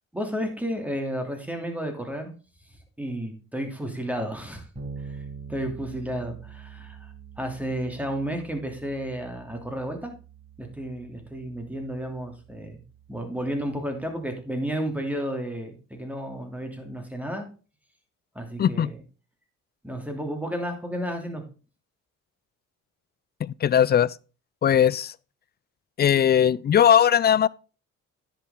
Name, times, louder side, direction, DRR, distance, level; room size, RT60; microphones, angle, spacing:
voice 1, 0.1-2.3 3.0-4.7 5.0-5.2 5.5-10.1 10.6-12.8 13.1-17.5 18.3-19.0 19.8-21.4, equal, 5° right, 2.9 m, -32 dB
Bass guitar, 4.7-14.4, right 5 dB, 20° right, 5.8 m, -45 dB
voice 2, 18.6-18.9 23.4-24.2 24.6-25.1 26.0-27.5, left 9 dB, 30° left, 0.4 m, -19 dB
10.0 x 7.0 x 3.8 m
supercardioid pair, 70°, 32 cm